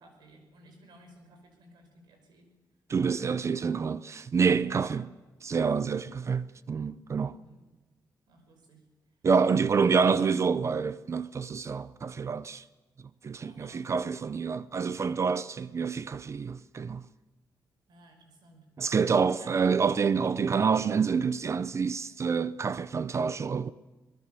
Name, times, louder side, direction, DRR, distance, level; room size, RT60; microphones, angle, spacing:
voice 1, 0.0-2.5 3.2-3.5 4.7-5.0 7.2-7.6 8.3-8.8 13.4-13.9 17.9-18.7 19.4-19.5, right 1 dB, 80° right, 5.2 m, -56 dB
voice 2, 2.9-5.1 5.4-7.4 9.2-12.6 13.2-17.0 18.8-23.7, right 5 dB, 40° right, 0.6 m, -27 dB
23.0 x 20.0 x 6.9 m
cardioid pair, 115°, 7 cm